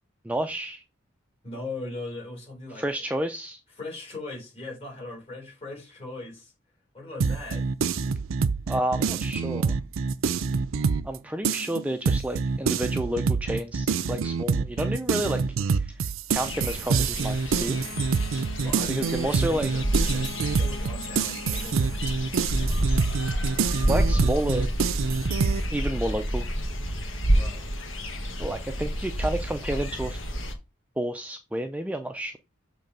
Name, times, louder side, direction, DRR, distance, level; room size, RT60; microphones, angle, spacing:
voice 1, 0.2-0.8 2.8-3.6 8.7-9.8 11.0-15.4 15.7-17.8 18.9-19.7 23.9-24.7 25.7-26.5 28.4-30.2 31.0-32.4, right 1 dB, 5° right, 0.3 m, -30 dB
voice 2, 1.4-2.8 3.8-6.5 6.9-7.7 18.6-22.1 27.3-27.6, left 2 dB, 30° left, 4.0 m, -39 dB
sound 1, 7.2-11.2 11.4-25.6, right 5 dB, 80° right, 0.5 m, -26 dB
sound 2, 16.3-30.5, equal, 70° left, 1.5 m, -29 dB
Bowed string instrument, 17.4-22.6, left 2 dB, 90° left, 1.5 m, -43 dB
6.9 x 3.3 x 5.2 m
head